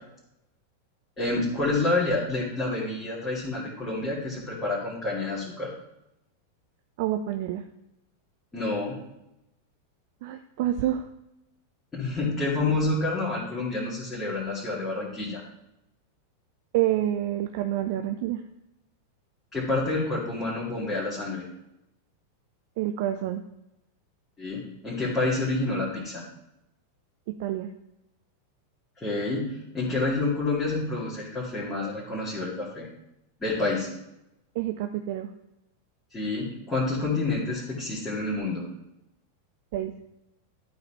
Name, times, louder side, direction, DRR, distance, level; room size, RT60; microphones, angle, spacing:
voice 1, 1.2-5.7 8.5-9.0 11.9-15.4 19.5-21.4 24.4-26.2 29.0-32.9 33.4-33.9 36.1-38.6, left 2 dB, 15° left, -8 dB, 2.4 m, -28 dB
voice 2, 7.0-7.6 10.2-11.1 16.7-18.4 22.8-23.4 27.3-27.7 34.5-35.3 39.7-39.9, right 12 dB, 50° right, 7 dB, 0.5 m, -28 dB
11.5 x 4.0 x 4.5 m, 0.87 s
figure-of-eight pair, 90°, 0 cm